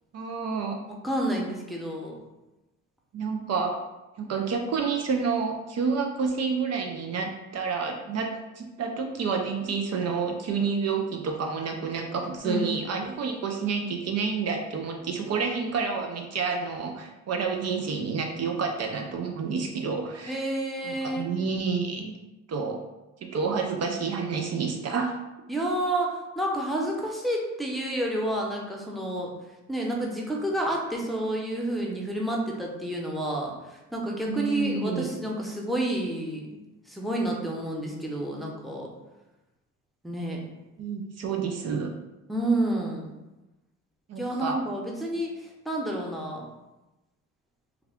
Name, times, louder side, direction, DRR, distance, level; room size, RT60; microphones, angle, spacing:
voice 1, 0.1-0.8 3.1-3.8 4.2-8.3 8.6-20.5 20.8-22.2 22.5-22.8 23.2-25.2 34.2-35.1 40.8-41.9 44.1-44.6, right 5 dB, 55° right, 3 dB, 0.5 m, -29 dB
voice 2, 0.9-2.2 12.4-12.7 20.3-21.3 25.5-29.3 29.7-36.6 36.9-38.9 40.0-40.4 42.3-43.1 44.2-46.5, right 1 dB, ahead, -2 dB, 0.7 m, -29 dB
3.4 x 2.3 x 3.5 m, 1.0 s
cardioid pair, 90°, 30 cm